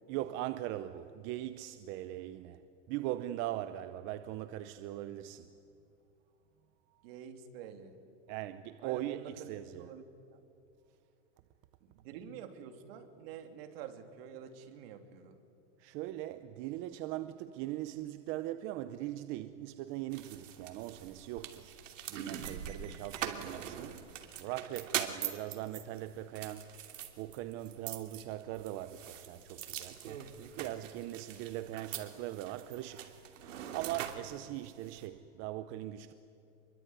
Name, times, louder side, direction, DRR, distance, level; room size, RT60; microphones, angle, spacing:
voice 1, 0.1-2.6 2.9-5.5 8.3-9.9 15.8-21.8 22.1-26.7 27.2-30.0 30.6-36.1, right 14 dB, 30° right, 0.7 m, -40 dB
voice 2, 7.0-8.0 8.8-9.5 9.8-10.0 10.3-10.4 11.8-15.4, right 8 dB, 50° right, 3.0 m, -48 dB
sound 1, 20.1-35.1, right 9 dB, 85° right, 2.9 m, -43 dB
26.5 x 22.5 x 9.5 m
supercardioid pair, 155°, 37 cm